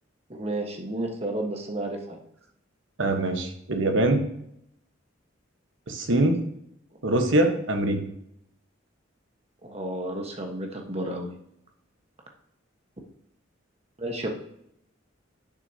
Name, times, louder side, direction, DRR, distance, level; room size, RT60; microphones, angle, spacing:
voice 1, 0.3-2.2 9.6-11.3 14.0-14.3, right 1 dB, 30° right, 2 dB, 1.3 m, -32 dB
voice 2, 3.0-4.2 5.9-6.5 7.0-8.0, right 1 dB, 70° right, 5 dB, 1.2 m, -23 dB
10.5 x 6.3 x 2.9 m, 0.75 s
head